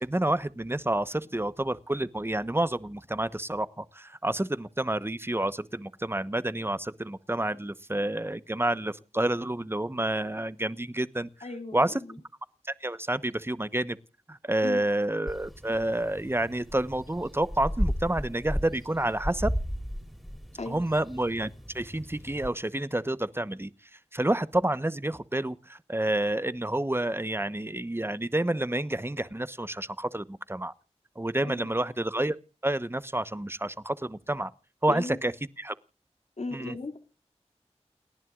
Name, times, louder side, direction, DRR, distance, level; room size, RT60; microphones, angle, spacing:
voice 1, 0.0-11.3 11.7-11.9 12.8-14.0 14.3-19.5 20.7-21.5 21.7-23.7 24.1-30.7 31.2-32.4 32.6-34.5 34.8-35.3 35.6-35.7 36.5-36.7, right 1 dB, 20° right, 1.1 m, -29 dB
voice 2, 11.4-12.2 14.6-14.8 20.6-20.8 31.4-31.7 34.9-35.2 36.4-37.0, left 3 dB, 80° left, 2.6 m, -36 dB
sound 1, 15.3-22.5, equal, ahead, 3.3 m, -35 dB
29.5 x 11.0 x 2.5 m
wide cardioid pair, 40°, 11 cm